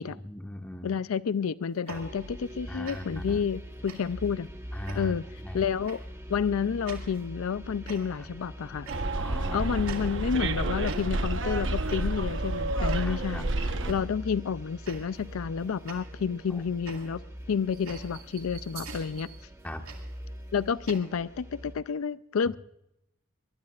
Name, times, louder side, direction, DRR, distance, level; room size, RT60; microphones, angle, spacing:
voice 1, 0.2-0.9 1.9-2.0 2.7-3.4 4.7-5.6 8.2-8.3 9.1-10.0 13.0-13.5 13.8-14.0 16.5-16.6 19.6-19.9, left 1 dB, 10° left, 4 dB, 1.3 m, -39 dB
voice 2, 0.8-4.5 4.9-5.2 5.5-6.0 6.3-8.9 9.5-17.2 17.5-19.3 20.5-22.6, left 6 dB, 75° left, 16 dB, 0.4 m, -30 dB
sound 1, 1.7-2.6 2.8-3.3 3.9-4.3 4.9-5.3 5.9-6.2 6.9-7.3 7.9-8.4 8.8-9.4 9.8-10.5 10.8-11.4 11.9-12.3 12.9-13.3 13.9-14.2 14.8-15.3 15.9-21.0, right 4 dB, 90° right, 2.4 m, -46 dB
sound 2, 1.9-21.8, equal, 10° right, 1.3 m, -43 dB
Bus, 8.9-13.9, right 2 dB, 60° right, 1.0 m, -29 dB
23.0 x 20.5 x 2.4 m, 0.83 s
head